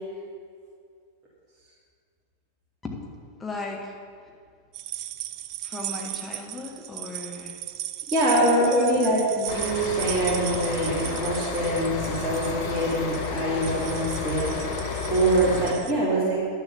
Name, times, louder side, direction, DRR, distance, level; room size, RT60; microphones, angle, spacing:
voice 1, 3.4-4.0 4.2-4.3 5.6-7.6 8.6-9.2, left 3 dB, 15° left, -1 dB, 1.9 m, -34 dB
sound 1, 4.7-15.9, right 13 dB, 40° right, 0.5 m, -37 dB
voice 2, 8.1-14.7 15.1-16.4, right 1 dB, 25° right, -8 dB, 3.0 m, -24 dB
sound 2, 9.5-15.7, left 4 dB, 45° left, 1.3 m, -31 dB
11.0 x 7.4 x 7.1 m, 2.2 s
figure-of-eight pair, 90°, 0 cm